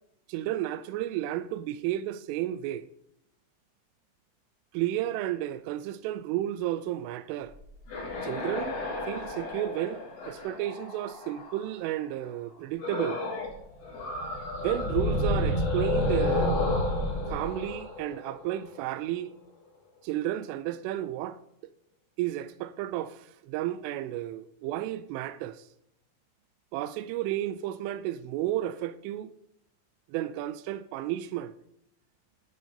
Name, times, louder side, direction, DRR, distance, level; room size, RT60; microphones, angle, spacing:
voice 1, 0.3-2.8 4.7-7.5 8.2-8.8 9.1-13.2 14.6-16.5 17.3-19.3 20.0-21.4 22.2-25.7 26.7-29.3 30.1-31.5, right 13 dB, 85° right, 3.1 m, -32 dB
sound 1, 7.5-11.7 12.8-13.6 13.8-18.7, left 1 dB, 65° left, 5.0 m, -30 dB
13.0 x 6.4 x 5.4 m
omnidirectional pair, 5.6 m